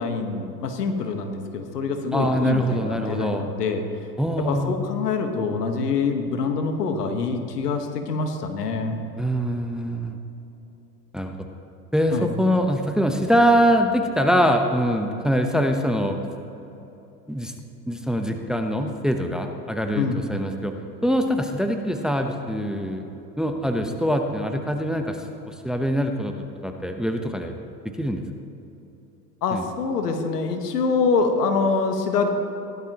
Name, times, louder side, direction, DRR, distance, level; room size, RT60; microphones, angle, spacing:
voice 1, 0.0-3.8 4.5-9.0 12.1-12.3 19.9-20.3 29.4-32.3, left 4 dB, 85° left, 5 dB, 1.5 m, -25 dB
voice 2, 2.1-3.5 4.2-4.7 9.2-10.2 11.1-11.4 11.9-16.2 17.3-17.5 17.9-20.7 21.0-23.0 23.4-25.2 25.5-27.6 28.0-28.2 29.5-29.6, equal, ahead, 5 dB, 0.9 m, -23 dB
17.5 x 11.5 x 3.0 m, 3.0 s
hypercardioid pair, 90°, 46 cm